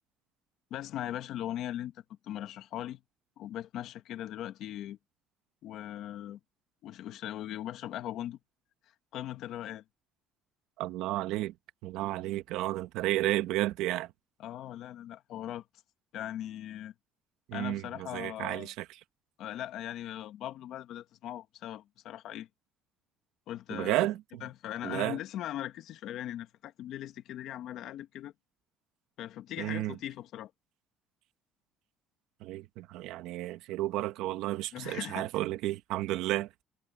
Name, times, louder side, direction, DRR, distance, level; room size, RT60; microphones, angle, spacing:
voice 1, 0.7-3.0 3.4-5.0 5.6-6.4 6.8-8.4 9.1-9.8 14.4-15.6 16.1-16.9 17.5-18.7 19.4-22.5 23.5-24.0 24.4-28.3 29.2-30.5 34.7-35.3, left 12 dB, 55° left, 1.3 m, -39 dB
voice 2, 10.8-11.5 11.8-14.1 17.5-18.8 23.7-24.4 24.8-25.2 29.6-29.9 32.4-36.6, right 16 dB, 75° right, 1.5 m, -32 dB
cardioid pair, 160°, 0 cm